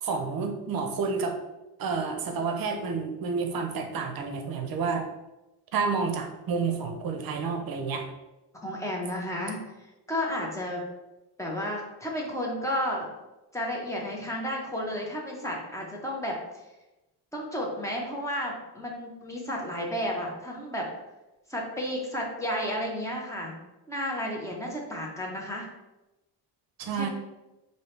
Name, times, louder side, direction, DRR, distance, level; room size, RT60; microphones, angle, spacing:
voice 1, 0.0-1.4 1.8-5.1 5.7-8.1 26.8-27.1, right 5 dB, 55° right, 5 dB, 0.7 m, -30 dB
voice 2, 8.6-9.6 10.1-10.8 11.4-13.1 13.5-16.4 17.3-20.9 21.5-23.6 23.9-25.7 26.9-27.1, equal, 5° left, -2 dB, 0.8 m, -32 dB
4.6 x 2.8 x 3.2 m, 1.0 s
cardioid pair, 155°, 43 cm